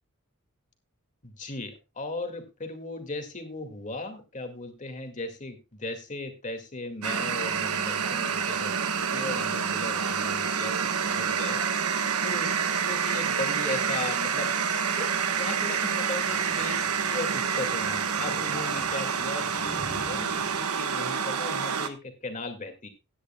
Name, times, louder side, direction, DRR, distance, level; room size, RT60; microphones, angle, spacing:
voice 1, 1.2-11.6 12.2-14.5 15.0-22.9, left 2 dB, 35° left, 6 dB, 2.1 m, -37 dB
sound 1, 7.0-21.9, right 6 dB, 80° right, 1.1 m, -28 dB
Thunder / Rain, 14.3-20.6, equal, 5° left, 3.8 m, -48 dB
16.5 x 9.9 x 2.3 m, 0.25 s
head